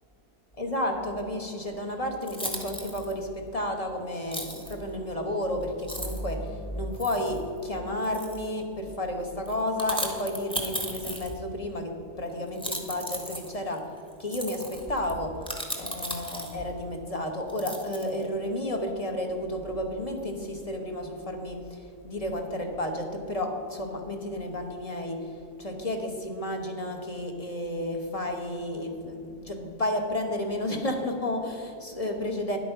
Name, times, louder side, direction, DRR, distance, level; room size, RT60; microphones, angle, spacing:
voice 1, 0.6-13.9 14.2-15.5 15.8-32.6, left 1 dB, 25° left, 3 dB, 1.0 m, -32 dB
sound 1, 1.7-1.8 2.2-3.1 4.3-4.7 5.4-5.5 5.8-6.3 6.9-7.4 8.0-8.5 9.5-11.6 12.5-16.7 17.5-18.3, right 1 dB, 5° left, 1.1 m, -36 dB
10.5 x 8.4 x 5.8 m, 2.7 s
omnidirectional pair, 1.7 m